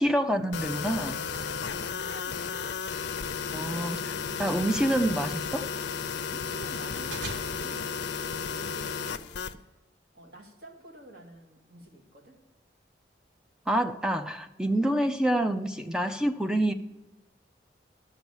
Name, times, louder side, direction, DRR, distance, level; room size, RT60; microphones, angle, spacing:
voice 1, 0.0-1.3 3.5-4.0 4.4-5.7 13.7-16.7, right 1 dB, 5° right, 7 dB, 0.4 m, -27 dB
sound 1, 0.5-9.5, left 6 dB, 75° left, 0.6 m, -33 dB
sound 2, 1.1-8.8, right 2 dB, 80° right, 1.4 m, -49 dB
voice 2, 1.3-2.6 3.4-4.7 6.3-9.7 10.1-12.4, right 1 dB, 60° right, 1 dB, 2.1 m, -49 dB
12.0 x 6.2 x 7.2 m, 1.1 s
head